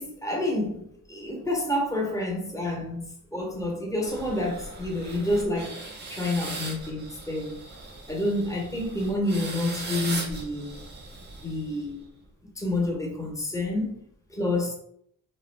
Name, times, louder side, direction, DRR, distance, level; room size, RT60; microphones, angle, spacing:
voice 1, 0.0-5.8 6.1-7.6 8.1-10.8 11.4-12.0 12.6-14.0 14.3-14.7, left 1 dB, 10° left, -1 dB, 0.7 m, -29 dB
sound 1, 4.0-12.0, right 3 dB, 30° right, 0.6 m, -39 dB
2.3 x 2.1 x 3.1 m, 0.67 s
cardioid pair, 80°, 33 cm